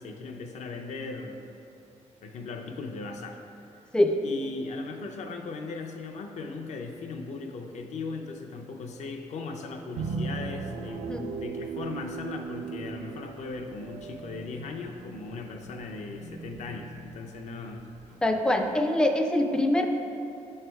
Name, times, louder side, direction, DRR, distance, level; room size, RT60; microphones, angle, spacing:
voice 1, 0.0-1.4 2.2-3.4 4.2-11.1 11.3-17.9, left 3 dB, 60° left, 3 dB, 0.6 m, -38 dB
sound 1, 10.0-18.7, right 4 dB, 75° right, 0.4 m, -39 dB
voice 2, 18.2-19.9, left 1 dB, 5° left, 5 dB, 0.3 m, -24 dB
6.8 x 3.3 x 4.5 m, 2.7 s
cardioid pair, 150°, 13 cm